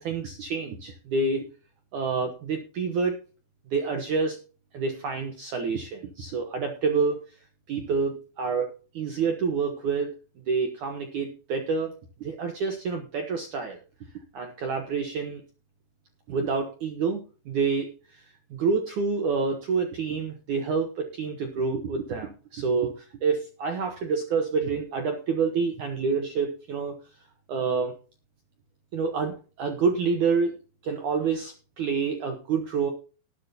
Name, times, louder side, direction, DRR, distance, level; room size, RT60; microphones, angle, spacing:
voice 1, 0.0-1.5 1.9-3.2 3.7-4.4 4.7-7.2 7.7-10.1 10.5-11.9 12.2-13.8 14.3-15.4 16.3-18.2 18.5-27.0 27.5-27.9 28.9-30.6 30.8-32.9, right 5 dB, 85° right, 5 dB, 1.7 m, -28 dB
19.0 x 8.6 x 2.8 m, 0.36 s
omnidirectional pair, 5.5 m